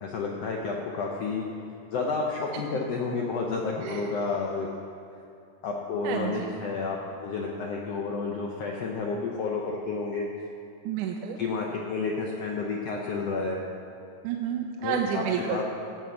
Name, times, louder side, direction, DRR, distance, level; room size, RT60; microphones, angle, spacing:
voice 1, 0.0-1.4 1.9-4.7 5.6-10.3 11.4-13.6 14.8-15.7, left 4 dB, 80° left, -1 dB, 1.4 m, -30 dB
voice 2, 6.0-6.5 10.9-11.4 14.2-15.6, right 8 dB, 80° right, 2 dB, 2.1 m, -30 dB
15.5 x 7.7 x 5.1 m, 2.6 s
omnidirectional pair, 3.8 m